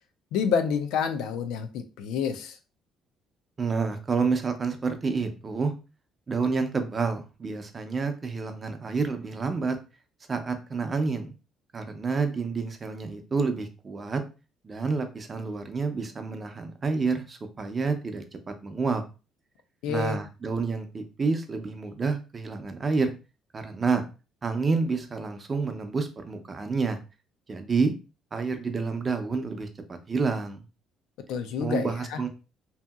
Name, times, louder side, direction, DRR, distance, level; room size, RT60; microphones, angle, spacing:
voice 1, 0.3-2.6 19.8-20.2 31.3-32.2, left 6 dB, 90° left, 0.4 m, -28 dB
voice 2, 3.6-5.7 6.3-9.8 10.3-11.3 11.7-14.2 14.6-19.0 19.9-23.1 23.5-24.0 24.4-27.0 27.5-27.9 28.3-30.6 31.6-32.3, right 4 dB, 30° right, 0.5 m, -29 dB
2.7 x 2.7 x 2.3 m
cardioid pair, 110°, 0 cm